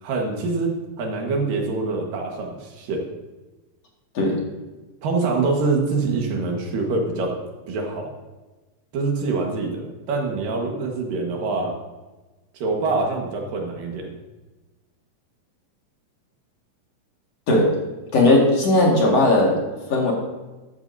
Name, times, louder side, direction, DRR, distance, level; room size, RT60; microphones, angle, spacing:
voice 1, 0.0-3.1 5.0-7.4 7.7-8.1 8.9-11.8 12.5-14.1, right 3 dB, 75° right, 1 dB, 3.2 m, -25 dB
voice 2, 18.1-19.5 19.9-20.1, left 2 dB, 50° left, -2 dB, 2.8 m, -17 dB
13.0 x 13.0 x 2.7 m, 1.2 s
omnidirectional pair, 3.9 m